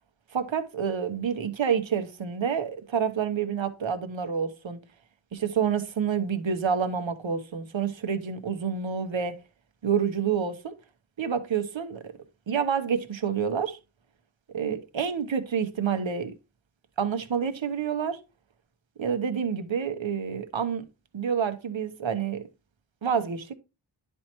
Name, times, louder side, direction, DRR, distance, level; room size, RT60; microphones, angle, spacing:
voice 1, 0.3-4.8 5.3-9.4 9.8-10.7 11.2-12.0 12.5-13.8 14.5-16.3 17.0-18.2 19.0-20.8 21.1-22.4 23.0-23.5, right 7 dB, 65° right, 1.0 m, -28 dB
10.5 x 4.5 x 3.0 m
wide cardioid pair, 80°, 49 cm